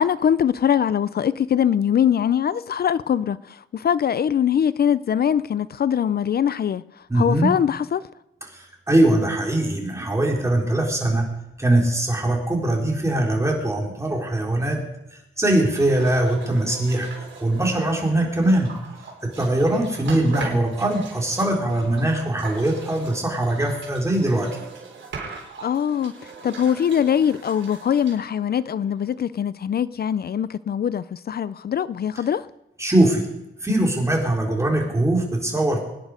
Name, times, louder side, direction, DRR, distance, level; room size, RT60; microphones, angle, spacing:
voice 1, 0.0-6.8 7.1-8.0 25.3-26.1 26.4-32.5, left 8 dB, 50° left, 0.5 m, -22 dB
voice 2, 7.1-7.5 8.5-11.3 11.6-14.8 15.4-17.1 17.4-18.7 19.2-24.6 32.8-33.3 33.6-35.8, right 1 dB, 15° right, 4.1 m, -21 dB
sound 1, 15.7-29.2, right 5 dB, 70° right, 4.0 m, -40 dB
24.0 x 10.0 x 5.1 m
cardioid pair, 95°, 20 cm